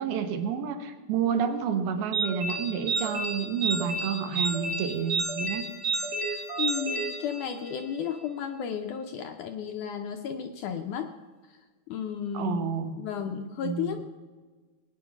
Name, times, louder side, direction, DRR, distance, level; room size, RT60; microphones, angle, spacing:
voice 1, 0.0-5.7 12.3-13.0 13.4-14.0, right 7 dB, 75° right, 7 dB, 3.0 m, -30 dB
sound 1, 2.1-7.9, right 3 dB, 55° right, 3.5 m, -31 dB
voice 2, 6.3-11.1 11.5-11.6 11.9-12.6 13.0-14.1, left 8 dB, 80° left, 6 dB, 1.8 m, -33 dB
21.0 x 9.7 x 5.9 m, 1.4 s
omnidirectional pair, 4.5 m